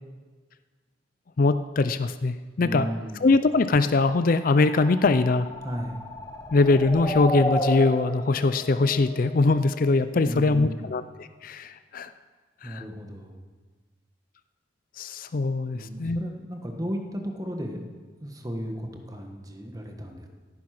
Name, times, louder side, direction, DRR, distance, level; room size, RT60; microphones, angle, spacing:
voice 1, 1.4-2.9 3.2-5.5 6.5-12.1 12.6-12.8 15.0-16.2, left 3 dB, 50° left, 12 dB, 0.4 m, -22 dB
voice 2, 2.6-3.3 5.6-6.0 10.2-10.9 12.6-13.4 15.7-17.8 18.2-20.3, equal, 20° right, 4 dB, 1.5 m, -34 dB
sound 1, 4.2-10.0, equal, 20° left, 1.1 m, -33 dB
16.0 x 9.9 x 6.0 m, 1.4 s
head